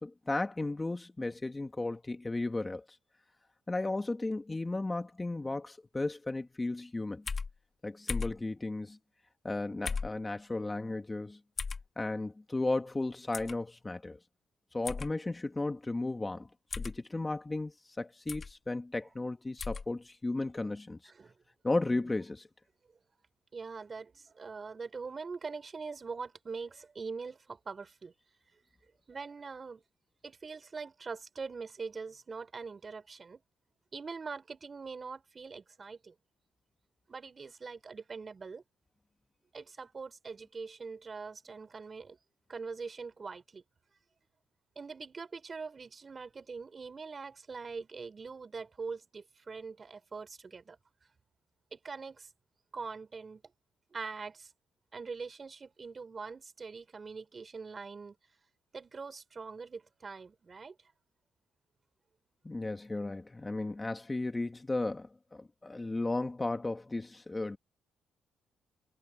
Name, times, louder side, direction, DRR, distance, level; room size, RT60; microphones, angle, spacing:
voice 1, 0.0-3.0 3.7-7.2 7.8-9.0 9.4-11.4 12.0-14.2 14.7-16.5 16.8-21.1 21.6-22.5 62.4-67.6, left 2 dB, 20° left, 1.9 m, -35 dB
sound 1, 7.3-7.5 8.1-8.4 9.8-10.2 11.6-11.8 13.3-13.5 14.8-15.1 16.7-17.0 18.3-18.5 19.6-19.8, left 4 dB, 35° left, 3.3 m, -35 dB
voice 2, 23.5-28.1 29.1-29.8 30.2-33.4 33.9-36.1 37.1-38.6 39.5-42.2 42.5-43.6 44.8-50.8 51.7-52.3 52.7-53.4 53.9-54.5 54.9-58.2 58.7-60.8, right 4 dB, 35° right, 5.3 m, -43 dB
cardioid pair, 90°, 0 cm